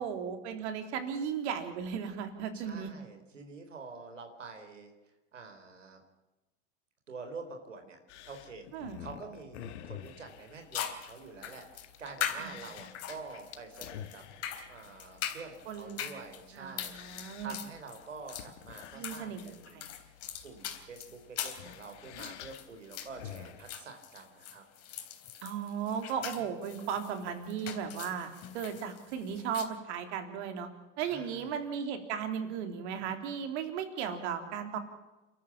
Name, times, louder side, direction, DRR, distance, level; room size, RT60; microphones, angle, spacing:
voice 1, 0.0-2.9 8.7-9.0 12.4-12.7 15.7-16.1 16.5-17.6 18.9-19.9 25.4-30.7 31.0-34.8, right 7 dB, 65° right, 7 dB, 3.7 m, -36 dB
voice 2, 2.5-4.9 5.3-6.0 7.1-8.0 8.2-8.7 9.0-14.2 14.7-19.8 20.4-24.6 31.1-31.4, right 4 dB, 90° right, 5 dB, 4.2 m, -47 dB
sound 1, 8.1-23.8, left 10 dB, 70° left, 1.9 m, -50 dB
sound 2, 10.1-10.2 10.7-29.6, left 9 dB, 40° left, 3.6 m, -42 dB
29.5 x 13.5 x 7.4 m, 1.1 s
hypercardioid pair, 90°, 36 cm